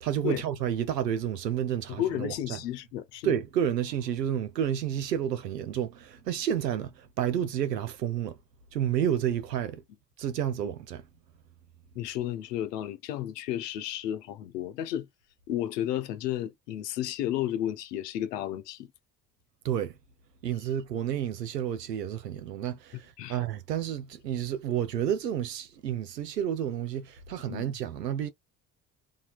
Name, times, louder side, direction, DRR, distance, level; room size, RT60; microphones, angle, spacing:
voice 1, 0.0-2.6 3.2-8.4 8.7-9.8 10.2-11.0 19.6-20.0 20.4-28.3, right 9 dB, 90° right, 0.7 m, -30 dB
voice 2, 1.9-3.3 11.9-15.1 15.5-18.9 23.2-23.4 27.5-27.7, left 12 dB, 80° left, 0.8 m, -32 dB
4.2 x 2.7 x 2.4 m
figure-of-eight pair, 50°, 48 cm